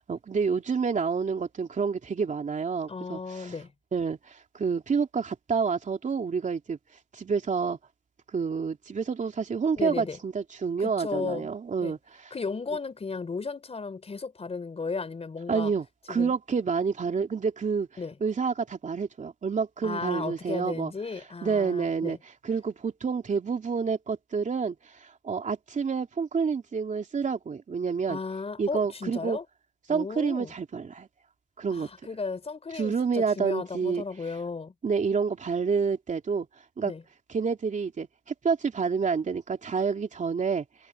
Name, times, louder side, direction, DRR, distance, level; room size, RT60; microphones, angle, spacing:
voice 1, 0.1-3.5 3.9-6.8 7.1-7.8 8.3-12.0 15.5-17.9 18.2-20.9 21.4-22.2 22.4-28.2 28.6-29.4 29.9-31.1 31.6-31.9 32.7-34.0 34.8-36.5 36.8-36.9 37.3-40.6, right 5 dB, 40° right, 3.1 m, -28 dB
voice 2, 2.9-3.7 9.8-10.2 10.8-11.5 11.8-11.9 12.3-15.7 16.1-16.3 18.0-18.2 19.8-22.2 28.1-29.4 29.9-30.5 31.7-34.7 36.8-37.0, left 4 dB, 30° left, 4.2 m, -35 dB
cardioid pair, 90°, 20 cm